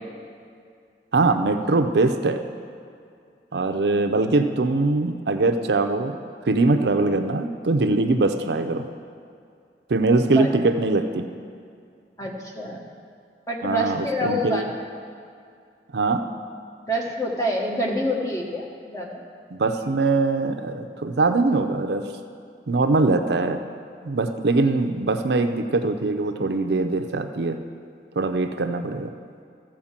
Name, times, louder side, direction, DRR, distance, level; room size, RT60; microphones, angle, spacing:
voice 1, 1.1-2.4 3.5-6.2 6.5-8.9 9.9-11.2 13.6-14.6 15.9-16.3 19.5-22.1 22.7-23.6 24.0-27.6 28.2-29.1, right 3 dB, 75° right, 7 dB, 0.6 m, -22 dB
voice 2, 12.2-12.9 13.5-14.8 16.9-19.2, equal, 20° left, -1 dB, 1.2 m, -27 dB
14.0 x 4.6 x 7.3 m, 2.3 s
head